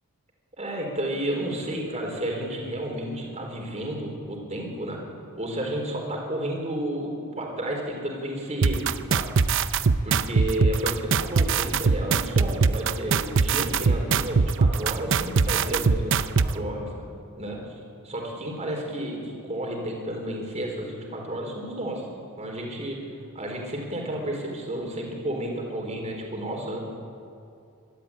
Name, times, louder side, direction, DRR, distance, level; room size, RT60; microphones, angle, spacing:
voice 1, 0.6-5.0 5.3-9.3 10.0-16.9 17.4-17.8 18.0-22.0 22.4-23.0 23.3-26.8, right 1 dB, 30° right, 0 dB, 4.1 m, -32 dB
sound 1, 8.6-16.5, right 5 dB, 60° right, 0.6 m, -21 dB
23.0 x 13.0 x 8.8 m, 2.6 s
head